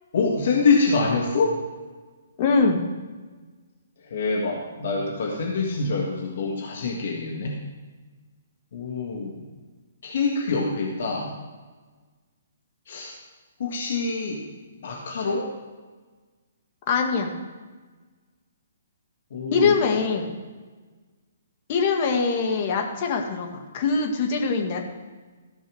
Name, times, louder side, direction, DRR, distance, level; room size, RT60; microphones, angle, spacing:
voice 1, 0.1-1.6 4.0-7.6 8.7-9.4 10.0-11.3 12.9-13.1 13.6-14.4 14.8-15.5 19.3-19.7, left 4 dB, 60° left, -1 dB, 1.7 m, -25 dB
voice 2, 2.4-2.8 16.9-17.3 19.5-20.3 21.7-23.5 23.7-24.8, left 4 dB, 40° left, 2 dB, 1.9 m, -22 dB
14.5 x 5.5 x 6.3 m, 1.4 s
figure-of-eight pair, 130°, 0 cm